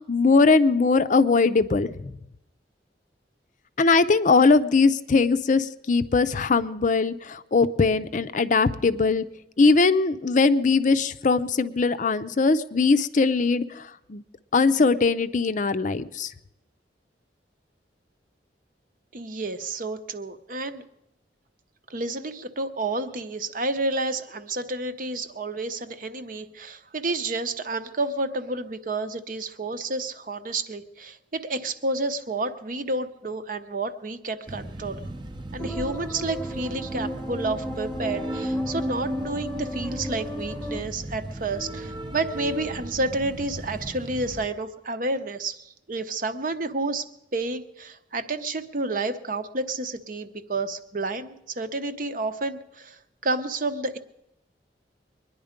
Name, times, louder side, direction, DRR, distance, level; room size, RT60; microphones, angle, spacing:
voice 1, 0.0-2.1 3.8-9.2 9.6-13.8 14.1-14.2 14.5-16.3, left 4 dB, 45° left, 13 dB, 0.5 m, -21 dB
voice 2, 19.1-20.8 21.9-35.0 35.5-47.0 47.3-54.0, right 2 dB, 50° right, 9 dB, 0.8 m, -30 dB
sound 1, 34.5-44.5, right 1 dB, 25° right, 0.7 m, -37 dB
sound 2, 35.6-40.8, equal, 10° left, 0.8 m, -33 dB
23.0 x 10.5 x 5.1 m, 0.85 s
head